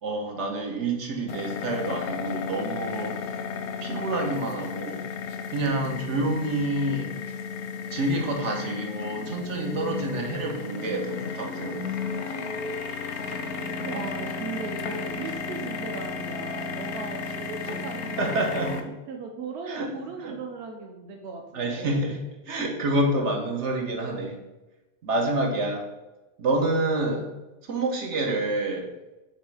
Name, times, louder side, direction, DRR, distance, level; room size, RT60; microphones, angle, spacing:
voice 1, 0.0-3.2 3.8-5.0 5.5-7.1 7.9-11.9 18.2-19.0 19.6-19.9 20.2-20.4 21.5-24.4 25.0-25.9 26.4-27.3 27.6-28.9, right 2 dB, 85° right, 1 dB, 1.3 m, -28 dB
sound 1, 1.3-18.8, left 5 dB, 85° left, 0.9 m, -33 dB
voice 2, 13.8-18.8 19.1-21.9, right 4 dB, 70° right, 3 dB, 0.9 m, -38 dB
7.2 x 3.1 x 4.8 m, 1.1 s
omnidirectional pair, 1.2 m